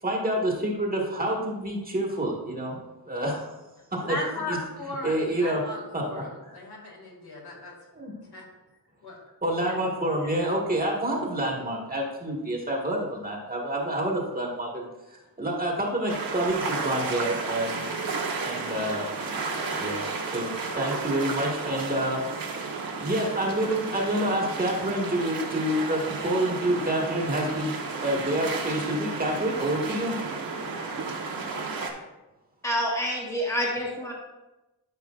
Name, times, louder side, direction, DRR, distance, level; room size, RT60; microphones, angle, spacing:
voice 1, 0.0-2.8 3.0-3.6 3.9-4.2 5.0-5.6 5.9-6.0 7.9-8.1 9.4-17.8 18.4-19.1 19.7-22.6 23.0-27.7 28.0-30.2, right 1 dB, 20° right, -2 dB, 1.7 m, -28 dB
voice 2, 4.0-7.8 8.2-8.4 9.0-9.2 9.6-9.8 10.1-10.5, left 2 dB, 65° left, -1 dB, 2.3 m, -37 dB
sound 1, 16.1-31.9, right 4 dB, 55° right, 1.3 m, -32 dB
voice 3, 32.6-34.1, equal, 5° left, -2 dB, 1.4 m, -27 dB
12.5 x 5.3 x 2.5 m, 1.0 s
wide cardioid pair, 115°, 40 cm